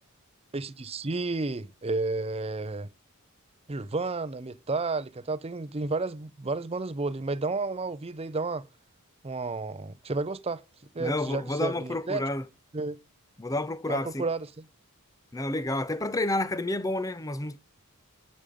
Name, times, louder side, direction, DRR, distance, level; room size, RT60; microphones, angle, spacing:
voice 1, 0.5-2.9 3.7-8.7 9.2-10.6 10.9-12.2 12.7-13.0 13.9-14.6, right 3 dB, 25° right, 0.6 m, -31 dB
voice 2, 11.0-12.5 13.4-14.3 15.3-17.6, left 1 dB, 15° left, 0.6 m, -30 dB
10.5 x 5.2 x 7.6 m
head